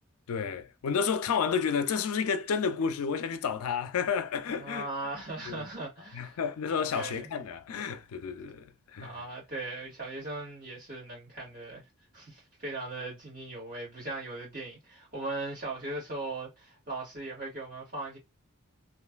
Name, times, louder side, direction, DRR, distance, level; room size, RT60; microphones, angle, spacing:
voice 1, 0.3-4.9 5.5-5.7 6.1-9.2, left 6 dB, 80° left, 0.4 m, -31 dB
voice 2, 4.5-6.4 6.9-7.3 9.0-11.8 12.1-18.2, right 2 dB, 40° right, 1.9 m, -39 dB
3.0 x 2.5 x 2.3 m
head